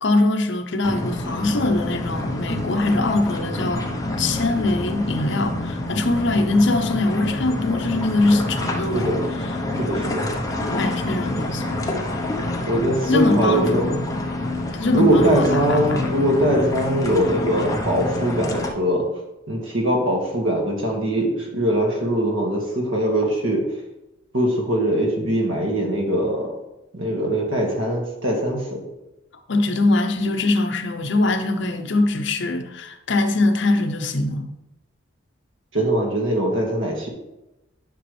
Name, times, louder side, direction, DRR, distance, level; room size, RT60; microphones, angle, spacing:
voice 1, 0.0-3.9 4.2-9.1 10.7-11.9 13.1-14.1 14.7-16.1 29.5-34.5, left 2 dB, 65° left, 6 dB, 0.8 m, -22 dB
sound 1, 0.8-18.7, left 1 dB, 15° left, 1.0 m, -27 dB
voice 2, 9.8-10.3 12.7-13.9 14.9-19.1 19.5-23.7 24.3-26.6 26.9-28.8 35.7-37.1, right 1 dB, 80° right, 0 dB, 2.0 m, -22 dB
10.5 x 6.1 x 3.3 m, 0.95 s
head